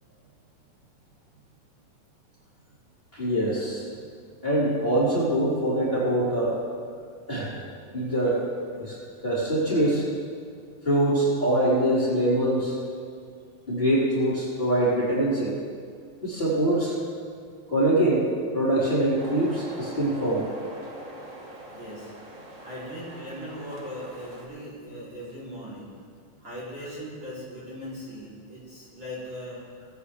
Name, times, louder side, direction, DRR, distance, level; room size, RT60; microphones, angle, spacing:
voice 1, 3.1-3.9 4.4-6.6 7.3-7.5 7.9-8.4 8.7-9.0 9.2-10.0 10.8-12.8 13.7-15.5 16.2-16.9 17.7-20.4, right 1 dB, 15° left, -11 dB, 3.9 m, -24 dB
sound 1, 19.2-24.5, right 1 dB, 50° right, 0.9 m, -42 dB
voice 2, 21.7-25.9 26.4-29.6, equal, 35° right, -9 dB, 3.8 m, -39 dB
20.5 x 9.5 x 3.3 m, 2.2 s
omnidirectional pair, 3.8 m